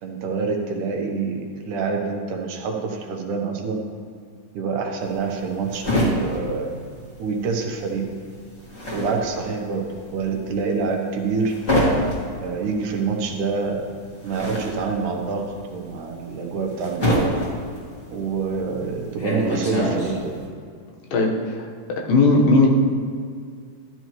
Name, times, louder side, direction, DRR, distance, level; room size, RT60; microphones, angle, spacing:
voice 1, 0.0-3.8 4.5-6.7 7.2-8.1 8.9-11.5 12.4-13.9 14.2-17.3 18.1-20.4, right 4 dB, 70° right, 2 dB, 2.3 m, -26 dB
sound 1, 5.0-7.6 7.8-20.4, equal, 25° left, 2.1 m, -26 dB
voice 2, 21.1-21.7 22.1-22.7, left 3 dB, 80° left, 0 dB, 2.9 m, -17 dB
13.5 x 10.5 x 3.0 m, 2.1 s
omnidirectional pair, 4.0 m